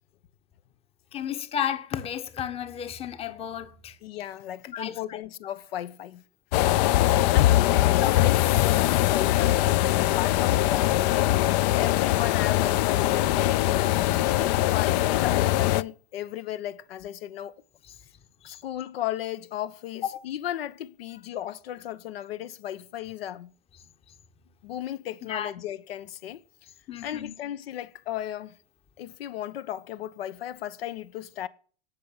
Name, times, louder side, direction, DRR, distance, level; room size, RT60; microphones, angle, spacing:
voice 1, 1.1-4.0 4.7-5.2 6.7-7.0 8.0-8.1 18.4-18.6 25.3-25.5 26.9-27.3, left 9 dB, 20° left, 1.0 m, -33 dB
voice 2, 4.0-6.2 7.3-11.3 11.8-17.5 18.4-23.5 24.6-26.4 27.0-28.5 29.0-31.5, left 12 dB, 80° left, 1.2 m, -35 dB
sound 1, 6.5-15.8, left 15 dB, 45° left, 0.5 m, -22 dB
17.0 x 6.0 x 8.5 m
supercardioid pair, 150°, 29 cm